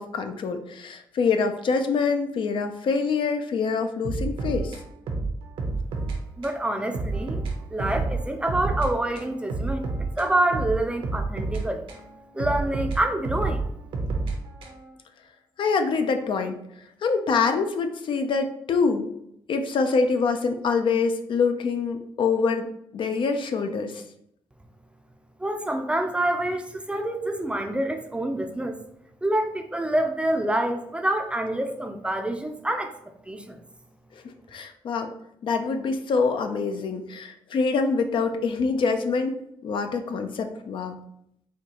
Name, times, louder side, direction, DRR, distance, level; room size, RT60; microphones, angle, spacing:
voice 1, 0.0-4.8 15.6-16.6 17.0-19.1 19.5-22.7 22.9-24.0 34.1-35.1 35.4-41.0, left 4 dB, 65° left, 6 dB, 0.4 m, -25 dB
sound 1, 4.0-6.2 6.4-6.6 6.9-8.9 9.2-12.0 12.4-14.9, right 3 dB, 80° right, 0.8 m, -29 dB
voice 2, 6.4-7.4 7.7-11.9 12.3-13.6 25.4-28.8 29.2-32.9 33.2-33.6, right 1 dB, 10° right, 5 dB, 0.4 m, -27 dB
4.3 x 2.3 x 2.9 m, 0.74 s
cardioid pair, 80°, 9 cm